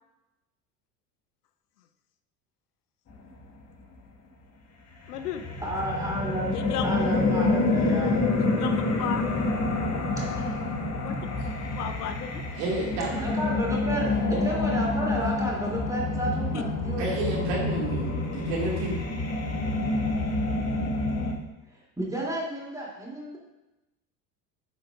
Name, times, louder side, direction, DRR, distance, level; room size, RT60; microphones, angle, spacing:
sound 1, 5.0-21.3, left 2 dB, 30° left, 1.7 m, -27 dB
voice 1, 5.1-5.4 6.5-6.9 8.4-9.2 11.0-11.2 11.7-12.4, left 9 dB, 70° left, 9 dB, 0.8 m, -34 dB
voice 2, 5.6-8.6 13.2-17.4 22.0-23.4, right 1 dB, 5° right, -4 dB, 2.8 m, -32 dB
sound 2, 7.7-12.1, left 1 dB, 85° right, 1.1 m, -39 dB
voice 3, 12.5-13.3 14.3-14.4 17.0-18.9, right 2 dB, 60° right, -4 dB, 2.2 m, -30 dB
11.0 x 7.8 x 2.4 m, 0.98 s
figure-of-eight pair, 70°, 48 cm